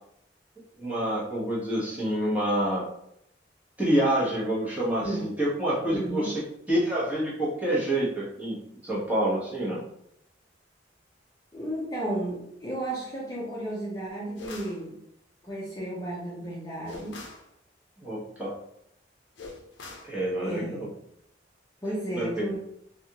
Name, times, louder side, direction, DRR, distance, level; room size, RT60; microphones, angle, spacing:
voice 1, 0.8-2.8 3.8-6.3 6.7-8.6 8.8-9.8 18.0-18.5 20.0-20.9 22.1-22.3, right 1 dB, 10° right, -7 dB, 1.0 m, -27 dB
voice 2, 5.9-6.3 11.5-14.9 15.4-17.2 20.4-20.8 21.8-22.6, right 1 dB, 20° left, -7 dB, 0.7 m, -33 dB
sound 1, 14.4-14.8 16.9-17.5 19.4-20.1, left 3 dB, 75° left, 0.5 m, -42 dB
3.3 x 2.4 x 2.8 m, 0.76 s
head